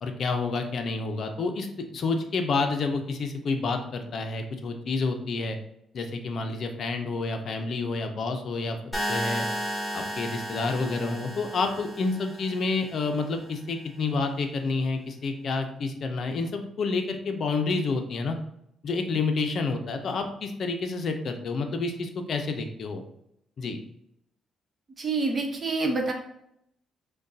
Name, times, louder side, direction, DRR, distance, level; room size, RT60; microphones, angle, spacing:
voice 1, 0.0-1.7 1.9-5.6 5.9-8.8 9.1-9.5 9.9-18.4 18.8-23.0 23.6-23.8, left 3 dB, 55° left, 5 dB, 0.5 m, -29 dB
sound 1, 8.9-12.9, equal, 15° left, 1.5 m, -33 dB
voice 2, 25.0-26.1, right 3 dB, 35° right, 2 dB, 0.9 m, -27 dB
6.2 x 2.3 x 2.6 m, 0.76 s
cardioid pair, 90°, 0 cm